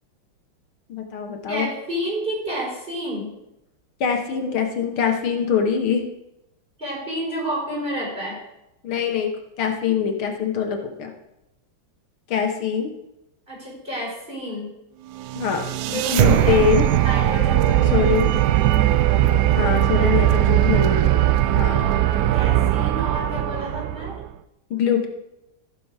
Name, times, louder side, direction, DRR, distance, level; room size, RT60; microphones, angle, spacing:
voice 1, 0.9-1.7 4.0-6.1 8.8-9.3 9.6-11.1 12.3-12.9 15.4-16.9 17.9-18.3 19.6-21.9 24.7-25.1, left 7 dB, 75° left, 4 dB, 2.0 m, -23 dB
voice 2, 1.5-3.3 6.8-8.4 13.5-14.7 15.8-18.0 19.1-20.4 21.6-24.2, equal, 25° right, -5 dB, 4.8 m, -30 dB
sound 1, 15.2-24.3, right 13 dB, 80° right, 0.9 m, -19 dB
15.0 x 6.8 x 4.9 m, 0.88 s
omnidirectional pair, 2.3 m